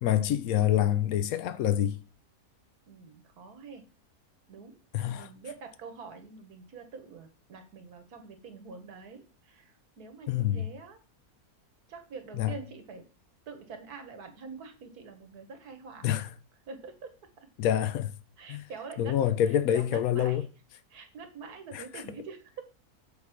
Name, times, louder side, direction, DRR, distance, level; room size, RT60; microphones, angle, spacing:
voice 1, 0.0-2.0 4.9-5.3 10.3-10.6 12.4-12.5 16.0-16.3 17.6-18.1 18.5-18.6 19.0-20.4 21.7-21.8, left 11 dB, 75° left, 1.0 m, -26 dB
voice 2, 2.9-3.9 4.5-4.8 5.0-11.0 11.9-13.1 13.5-16.1 16.7-17.1 17.4-17.5 18.4-19.2 19.5-20.4 20.9-22.6, right 5 dB, 85° right, 1.8 m, -45 dB
7.3 x 3.8 x 6.0 m
omnidirectional pair, 1.6 m